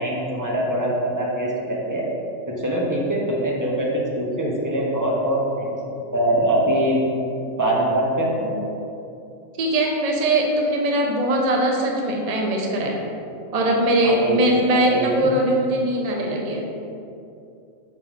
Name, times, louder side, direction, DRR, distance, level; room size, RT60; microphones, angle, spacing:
voice 1, 0.0-2.1 2.5-7.0 7.6-8.7 14.0-14.4 14.7-15.1, right 1 dB, 15° right, -3 dB, 0.8 m, -23 dB
voice 2, 9.6-13.0 13.5-16.6, right 1 dB, 50° right, 0 dB, 0.4 m, -21 dB
4.7 x 4.0 x 5.8 m, 2.6 s
omnidirectional pair, 1.5 m